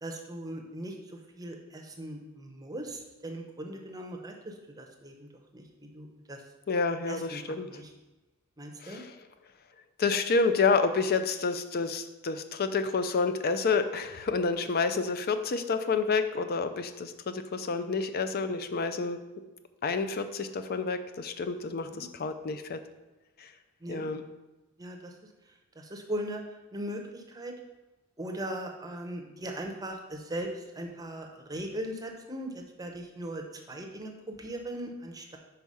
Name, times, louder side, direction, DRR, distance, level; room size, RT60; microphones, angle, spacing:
voice 1, 0.0-6.4 7.1-7.9 8.6-9.0 21.9-22.1 23.8-24.1 24.8-25.1 25.5-27.5 28.2-35.4, right 1 dB, 15° right, 2 dB, 0.7 m, -39 dB
voice 2, 6.7-7.7 8.8-9.1 10.0-19.2 19.8-22.8 23.4-23.5 23.9-24.2, left 4 dB, 45° left, 9 dB, 0.4 m, -29 dB
4.8 x 4.6 x 5.4 m, 1.1 s
head